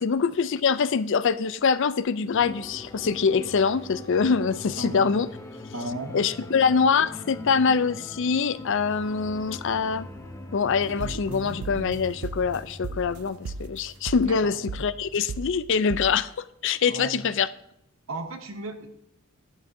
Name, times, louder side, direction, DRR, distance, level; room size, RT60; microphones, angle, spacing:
voice 1, 0.0-5.3 6.1-10.1 10.5-17.5, left 5 dB, 60° left, 0.4 m, -24 dB
sound 1, 2.3-15.9, left 1 dB, 15° left, 0.9 m, -42 dB
voice 2, 4.8-5.1 5.7-6.2 14.3-14.5 16.9-17.2 18.1-18.9, right 1 dB, 70° right, 1.2 m, -35 dB
sound 2, 10.8-13.2 13.4-13.8 14.1-14.4 14.7-15.0 15.3-15.6 15.9-16.2, right 4 dB, 90° right, 0.4 m, -36 dB
11.5 x 11.0 x 2.7 m
head